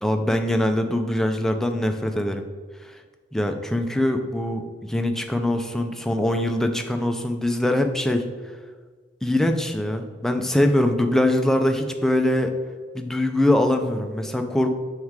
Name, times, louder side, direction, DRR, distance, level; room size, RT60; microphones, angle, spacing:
voice 1, 0.0-2.4 2.8-3.0 3.3-8.2 9.2-12.5 12.9-14.7, left 1 dB, ahead, 5 dB, 0.4 m, -23 dB
6.4 x 3.6 x 4.6 m, 1.5 s
head